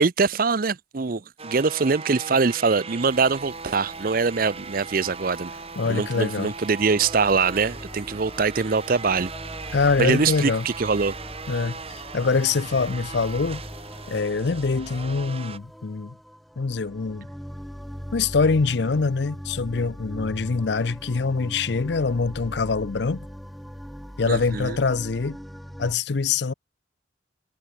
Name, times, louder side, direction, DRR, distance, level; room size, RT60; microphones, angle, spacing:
voice 1, 0.0-5.5 5.8-9.3 10.0-11.2 24.3-24.8, right 4 dB, 50° right, 0.6 m, -23 dB
sound 1, 1.4-15.6, right 4 dB, 30° right, 1.9 m, -39 dB
sound 2, 3.0-14.2, left 2 dB, 30° left, 3.8 m, -51 dB
voice 2, 5.8-6.5 9.7-10.7 11.5-13.6 14.1-16.2 16.6-17.3 18.1-23.3 24.2-25.4 25.8-26.5, left 4 dB, 65° left, 0.6 m, -24 dB
sound 3, 6.8-26.0, equal, ahead, 2.0 m, -40 dB
head